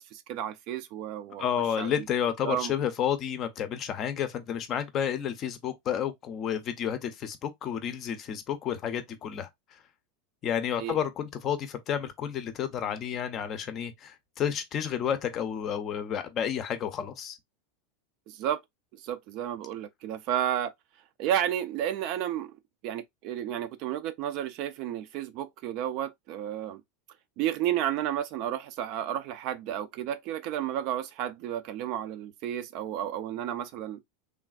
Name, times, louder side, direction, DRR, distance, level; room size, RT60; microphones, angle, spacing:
voice 1, 0.0-1.9 2.4-2.7 10.8-11.0 18.3-18.6 18.9-20.7 21.2-22.6 22.8-26.8 27.4-34.0, right 11 dB, 50° right, 0.4 m, -32 dB
voice 2, 1.4-9.5 10.4-17.4, left 9 dB, 35° left, 0.5 m, -31 dB
3.3 x 2.4 x 2.3 m
supercardioid pair, 145°, 0 cm